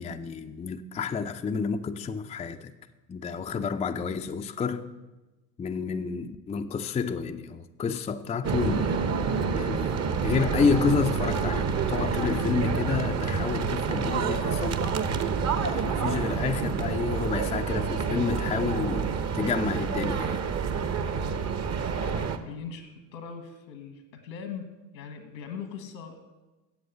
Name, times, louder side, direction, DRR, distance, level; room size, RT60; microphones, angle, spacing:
voice 1, 0.0-2.7 3.1-4.9 5.6-9.0 9.5-9.9 10.2-14.9 15.5-20.4, left 5 dB, 15° left, 0.5 m, -30 dB
sound 1, 8.4-22.4, right 6 dB, 30° right, 0.9 m, -28 dB
voice 2, 21.8-26.4, left 6 dB, 85° left, 1.7 m, -41 dB
8.0 x 7.7 x 7.8 m
hypercardioid pair, 70°, 50 cm